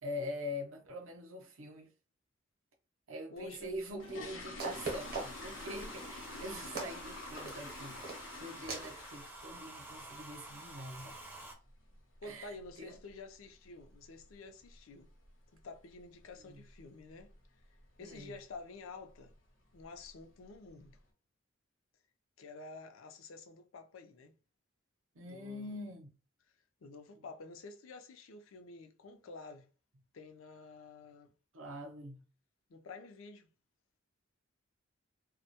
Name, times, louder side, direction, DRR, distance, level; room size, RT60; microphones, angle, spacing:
voice 1, 0.0-1.9 3.1-11.2 12.2-13.0 16.5-16.6 18.0-18.4 25.1-26.1 31.5-32.2, left 1 dB, 85° right, 0.6 m, -44 dB
voice 2, 3.3-3.7 12.2-15.1 15.5-17.3 18.0-19.3 19.7-21.0 22.4-24.3 25.2-25.8 26.8-29.7 30.1-31.3 31.8-31.9 32.7-33.5, left 3 dB, 90° left, 0.4 m, -50 dB
sound 1, 3.6-9.5 9.8-10.1 10.5-10.6 10.9-11.1 11.4-11.7 11.9-12.0 12.6-12.7 13.0-13.1 13.6-13.9 14.2-14.3 14.7-14.9 15.2-15.3 15.8-15.9 16.5-16.8 17.1-17.4 17.8-17.9 18.3-18.4 19.2-19.3 19.7-20.2 20.7-20.8, left 3 dB, 75° left, 0.8 m, -47 dB
sound 2, 4.1-4.2 4.6-5.5 6.0-6.3 6.7-7.0 7.4-7.7 8.0-8.3 8.7-9.0, right 3 dB, 50° right, 0.6 m, -40 dB
Domestic sounds home sounds, 4.7-11.5, right 2 dB, 10° right, 0.4 m, -50 dB
2.1 x 2.1 x 2.8 m
head